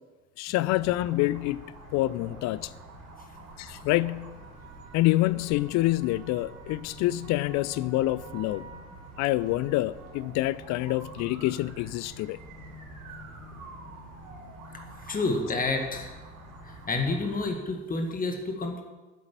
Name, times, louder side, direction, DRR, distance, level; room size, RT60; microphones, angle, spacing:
voice 1, 0.4-1.6 1.9-2.7 3.6-4.3 4.9-8.7 9.2-12.4, left 17 dB, 45° left, 0.5 m, -27 dB
Ambient (sirens), 0.6-17.5, right 1 dB, 55° right, 4.3 m, -46 dB
voice 2, 15.0-16.1 16.6-18.8, left 3 dB, 20° left, 1.9 m, -29 dB
9.4 x 7.9 x 9.0 m
figure-of-eight pair, 60°, 39 cm